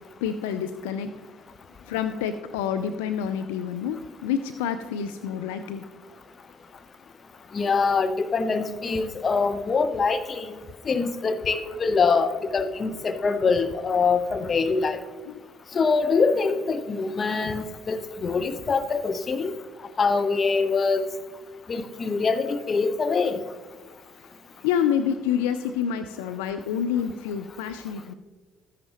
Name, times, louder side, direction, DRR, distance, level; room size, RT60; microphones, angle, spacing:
voice 1, 0.2-1.1 1.8-5.9 15.2-15.4 24.6-28.1, left 8 dB, 75° left, 10 dB, 0.4 m, -28 dB
voice 2, 7.5-10.6 10.9-15.0 15.7-19.5 20.0-21.1 21.7-23.4, left 4 dB, 40° left, 9 dB, 0.8 m, -24 dB
13.5 x 10.5 x 3.0 m, 1.3 s
figure-of-eight pair, 50°, 0 cm